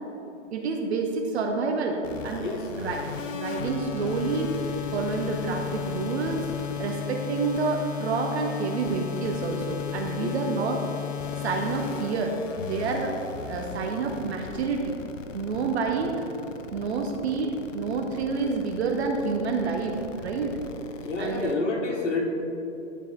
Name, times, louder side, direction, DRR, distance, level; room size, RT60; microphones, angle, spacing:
voice 1, 0.5-2.5 2.8-3.0 3.3-4.6 4.9-6.5 6.8-10.8 11.4-13.1 13.5-14.9 15.3-16.2 16.7-20.6 21.2-21.5, right 4 dB, 60° right, 2 dB, 0.9 m, -28 dB
sound 1, 2.0-21.5, left 8 dB, 85° left, 0.7 m, -35 dB
voice 2, 21.0-22.2, left 3 dB, 70° left, -1 dB, 1.6 m, -28 dB
11.5 x 4.1 x 3.7 m, 2.9 s
hypercardioid pair, 130°, 37 cm